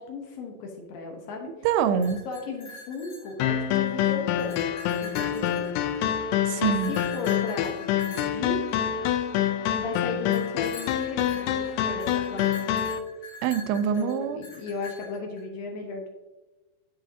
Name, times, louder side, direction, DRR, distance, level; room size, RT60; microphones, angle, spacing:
voice 1, 0.0-1.5 2.3-5.7 6.6-8.6 9.7-12.9 13.2-13.4 13.9-16.1, left 3 dB, 75° left, 1 dB, 2.3 m, -36 dB
voice 2, 1.6-2.2 6.4-6.9 13.4-14.4, right 7 dB, 85° right, 11 dB, 2.6 m, -25 dB
sound 1, 1.9-3.8 4.2-6.1 6.6-9.4 10.3-15.4, left 2 dB, 55° left, 3.5 m, -44 dB
sound 2, 3.4-13.0, left 10 dB, 90° left, 2.7 m, -26 dB
10.5 x 4.5 x 2.7 m, 1.2 s
omnidirectional pair, 4.6 m